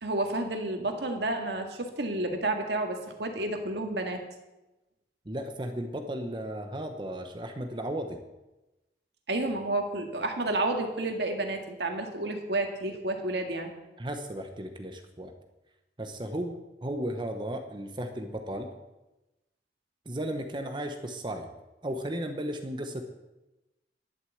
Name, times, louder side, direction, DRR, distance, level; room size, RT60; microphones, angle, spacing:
voice 1, 0.0-4.2 9.3-13.7, right 2 dB, 75° right, 4 dB, 2.0 m, -30 dB
voice 2, 5.2-8.2 14.0-15.3 16.0-18.7 20.0-21.5 21.8-23.1, right 1 dB, 25° right, 6 dB, 1.0 m, -35 dB
11.5 x 8.2 x 7.9 m, 1.0 s
head